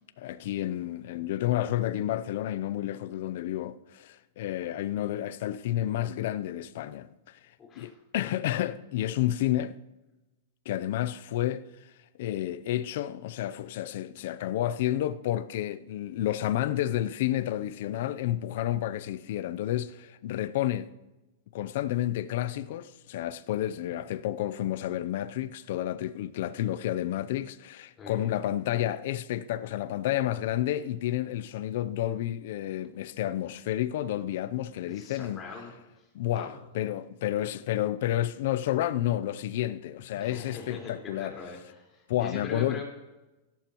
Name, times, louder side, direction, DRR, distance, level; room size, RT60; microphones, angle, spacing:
voice 1, 0.2-7.4 7.8-9.8 10.7-11.6 12.2-20.9 21.5-35.4 36.1-41.3 42.1-42.8, left 13 dB, 65° left, 0.5 m, -30 dB
voice 2, 7.6-7.9 28.0-28.4 34.8-35.7 36.3-36.5 40.2-42.8, left 4 dB, 25° left, 4.4 m, -42 dB
16.5 x 12.0 x 3.0 m
hypercardioid pair, 130°, 0 cm